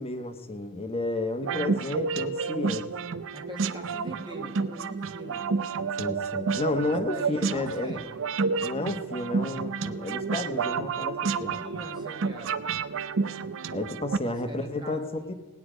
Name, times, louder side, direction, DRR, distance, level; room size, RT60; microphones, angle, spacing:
voice 1, 0.0-2.9 6.0-8.0 8.6-11.5 13.7-15.3, left 2 dB, 25° left, 8 dB, 1.1 m, -31 dB
sound 1, 1.4-14.2, right 5 dB, 60° right, 0.6 m, -30 dB
voice 2, 3.3-5.5 6.8-8.2 11.5-12.7 14.2-15.1, equal, 20° right, 1 dB, 1.4 m, -43 dB
18.5 x 9.6 x 5.0 m, 1.4 s
head